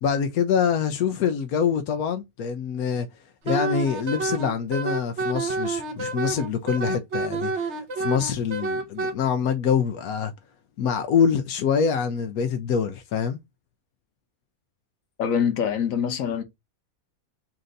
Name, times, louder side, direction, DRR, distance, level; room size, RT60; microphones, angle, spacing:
voice 1, 0.0-3.1 3.5-10.3 10.8-13.4, left 7 dB, 85° left, 1.1 m, -25 dB
Wind instrument woodwind instrument, 3.4-9.1, right 3 dB, 55° right, 1.3 m, -28 dB
voice 2, 15.2-16.4, left 7 dB, 70° left, 1.3 m, -24 dB
4.3 x 2.6 x 3.8 m
omnidirectional pair, 1.5 m